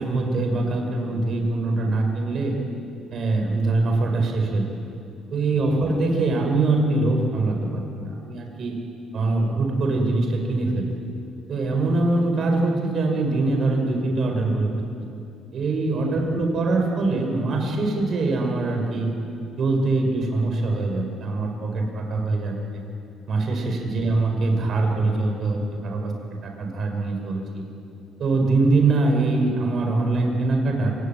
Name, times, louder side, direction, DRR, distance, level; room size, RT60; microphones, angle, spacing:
voice 1, 0.0-2.5 3.1-4.6 5.3-8.8 9.1-10.9 11.5-14.7 15.5-19.2 19.6-22.8 23.3-26.1 26.4-27.6 28.2-30.9, right 2 dB, 45° right, 2 dB, 5.5 m, -23 dB
27.5 x 17.5 x 9.4 m, 2.7 s
cardioid pair, 150°, 0 cm